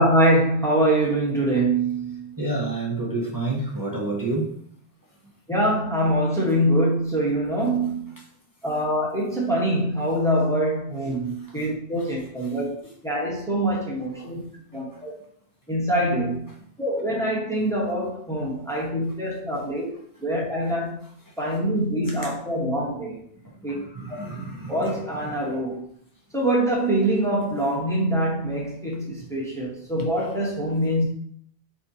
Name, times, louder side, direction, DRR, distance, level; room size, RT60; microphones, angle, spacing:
voice 1, 0.0-2.3 5.5-8.1 8.6-12.7 13.0-14.4 14.7-15.1 15.7-16.5 16.8-19.9 20.2-21.0 21.4-23.2 23.6-23.8 24.1-24.2 24.7-25.8 26.3-31.0, right 1 dB, 5° left, -4 dB, 1.0 m, -24 dB
voice 2, 2.4-4.5 14.2-14.3 23.7-24.9, right 2 dB, 25° right, -2 dB, 0.5 m, -29 dB
4.2 x 4.0 x 2.7 m, 0.63 s
omnidirectional pair, 1.2 m